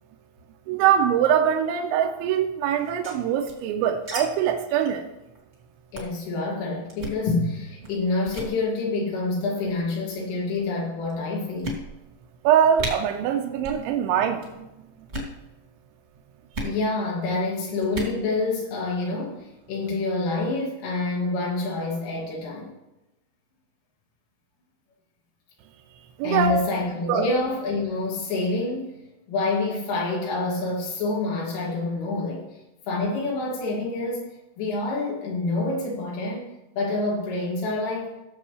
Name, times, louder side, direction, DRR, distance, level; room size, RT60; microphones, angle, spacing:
voice 1, 0.7-5.0 12.4-14.7 26.2-26.6 27.1-27.3, right 8 dB, 85° right, 3 dB, 3.0 m, -22 dB
sound 1, 2.8-4.2 4.4-4.5 4.8-5.0 5.3-5.5 5.9-6.2 6.9-7.2 7.8-8.0 8.3-8.5 9.4-9.8 10.5-10.6 11.1-11.2 11.6-12.2 12.4-12.5 12.8-12.9 13.6-13.8 14.1-14.5 15.0-15.4 16.5-16.7 17.8-18.2, right 1 dB, 30° right, 1.2 m, -34 dB
voice 2, 5.9-11.8 16.6-22.7 26.2-28.9 29.3-32.5 32.9-34.3 34.6-38.1, left 2 dB, 85° left, -4 dB, 5.1 m, -27 dB
18.0 x 7.3 x 3.3 m, 0.96 s
omnidirectional pair, 5.6 m